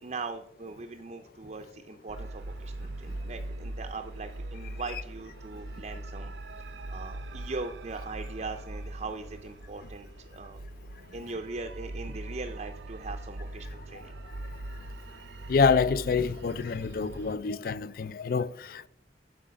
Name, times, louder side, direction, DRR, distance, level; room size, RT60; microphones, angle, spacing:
voice 1, 0.0-6.3 6.9-10.6 11.1-14.2, right 3 dB, 40° right, 0.5 m, -40 dB
sound 1, 2.1-17.4, right 1 dB, 90° right, 0.6 m, -41 dB
voice 2, 15.5-18.9, left 5 dB, 55° left, 0.3 m, -27 dB
11.5 x 4.9 x 5.1 m
head